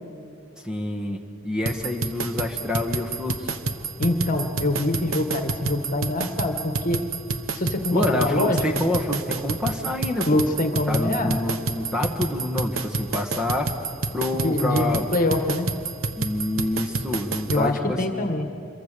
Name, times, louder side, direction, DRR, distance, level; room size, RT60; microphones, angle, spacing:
voice 1, 0.6-3.5 7.9-10.4 10.9-13.8 14.1-15.0 16.2-18.3, left 1 dB, 5° right, 2 dB, 1.4 m, -27 dB
sound 1, 1.7-17.6, right 3 dB, 75° right, 1.2 m, -28 dB
voice 2, 4.0-7.1 7.5-8.8 10.3-11.4 14.4-15.7 17.5-18.5, left 1 dB, 40° left, 6 dB, 1.6 m, -24 dB
26.5 x 23.0 x 6.8 m, 2.5 s
head